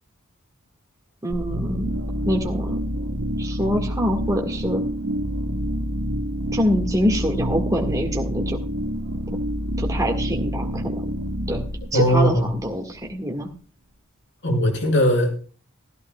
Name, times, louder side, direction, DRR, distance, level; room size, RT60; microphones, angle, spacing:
voice 1, 1.2-1.9 2.3-2.8 3.4-4.8 6.5-8.6 9.8-11.1 11.5-11.6 11.9-13.5, equal, 15° right, 1 dB, 1.8 m, -25 dB
sound 1, 1.3-13.1, equal, 90° right, 1.8 m, -27 dB
voice 2, 11.9-12.5 14.4-15.3, equal, 55° left, 1 dB, 6.1 m, -19 dB
17.0 x 14.5 x 2.3 m, 0.37 s
head